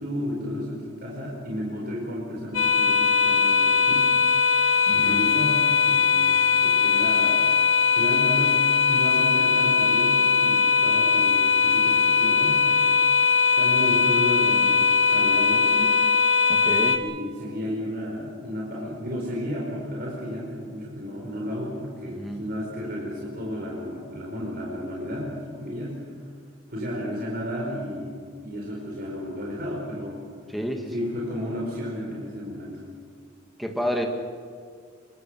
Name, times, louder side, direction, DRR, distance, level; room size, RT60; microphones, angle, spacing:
voice 1, 0.0-4.1 4.9-7.5 7.9-13.0 13.6-15.9 16.9-26.0 26.7-30.2 30.9-32.8, equal, 50° right, -3 dB, 4.9 m, -32 dB
sound 1, 2.5-17.0, left 5 dB, 85° left, 2.2 m, -20 dB
voice 2, 4.9-5.2 16.5-17.0 22.1-22.4 30.5-31.1 33.6-34.1, equal, ahead, 3 dB, 2.2 m, -30 dB
26.0 x 22.5 x 6.4 m, 2.2 s
head